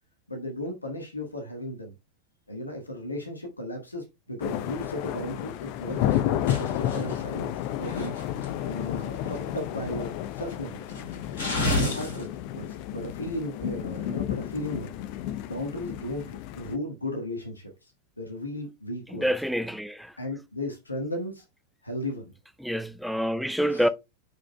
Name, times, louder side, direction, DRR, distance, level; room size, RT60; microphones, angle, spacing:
voice 1, 0.3-1.9 2.5-8.2 8.6-10.8 11.6-14.9 15.5-17.9 18.2-19.3 20.2-21.4 21.8-22.3 23.7-23.9, left 1 dB, 80° left, 1.5 m, -35 dB
sound 1, 4.4-16.8, left 12 dB, 45° left, 0.6 m, -32 dB
sound 2, 5.9-8.6 9.0-9.6 10.0-10.1 10.5-12.2, left 1 dB, 65° left, 4.2 m, -31 dB
voice 2, 19.1-20.1 22.6-23.9, equal, ahead, 0.5 m, -27 dB
9.9 x 5.0 x 2.2 m
figure-of-eight pair, 90°, 0 cm